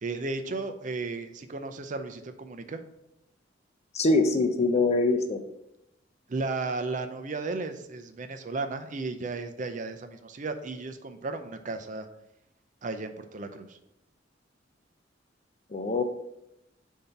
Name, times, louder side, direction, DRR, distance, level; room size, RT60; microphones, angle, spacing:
voice 1, 0.0-2.8 6.3-12.1 12.8-13.8, right 3 dB, 45° right, 8 dB, 0.5 m, -34 dB
voice 2, 3.9-5.4 15.7-16.0, left 3 dB, 35° left, 6 dB, 0.6 m, -23 dB
6.8 x 2.8 x 5.7 m, 0.83 s
head